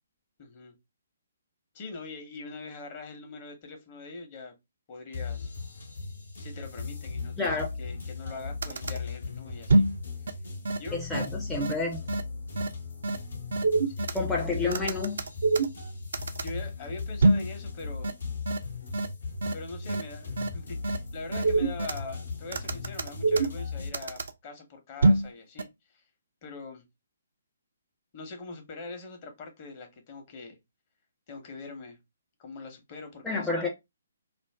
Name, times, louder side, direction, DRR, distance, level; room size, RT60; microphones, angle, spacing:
voice 1, 0.4-0.7 1.7-4.5 4.9-5.5 6.4-9.8 10.8-11.0 13.9-14.2 16.1-18.1 19.5-26.0 26.4-26.8 28.1-30.6 31.3-32.0 32.4-33.5, left 3 dB, 35° left, 0.8 m, -43 dB
sound 1, 5.1-23.9, left 4 dB, 70° left, 0.8 m, -38 dB
voice 2, 7.4-7.7 10.9-12.0 14.1-15.2 33.2-33.7, left 3 dB, 5° left, 0.5 m, -29 dB
sound 2, 8.3-8.4 8.6-9.0 9.7-10.0 10.3-10.4 10.6-10.8 11.1-11.3 11.6-11.7 12.1-12.2 12.6-12.7 13.0-13.2 13.5-14.2 14.7-15.9 16.1-16.5 17.2-17.5 18.0-18.1 18.5-18.6 18.9-19.1 19.4-19.5 19.9-20.0 20.4-20.5 20.8-21.0 21.3-22.0 22.5-23.6 23.9-24.3 25.0-25.3 25.6-25.7, right 2 dB, 65° right, 0.4 m, -24 dB
2.5 x 2.0 x 3.3 m
figure-of-eight pair, 135°, 0 cm